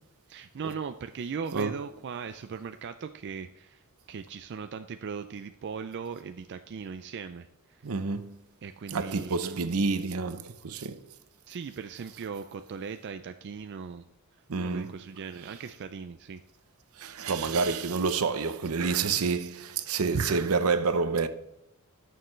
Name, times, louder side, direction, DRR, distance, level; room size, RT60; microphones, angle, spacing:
voice 1, 0.3-3.8 4.1-7.8 8.6-9.7 11.5-14.1 14.6-16.4 19.1-19.3 20.1-20.4, right 6 dB, 50° right, 0.4 m, -38 dB
voice 2, 7.8-8.4 8.9-11.0 12.1-12.2 14.5-15.0 15.5-15.7 17.0-21.3, right 4 dB, 75° right, 0.7 m, -29 dB
13.0 x 6.6 x 3.2 m
head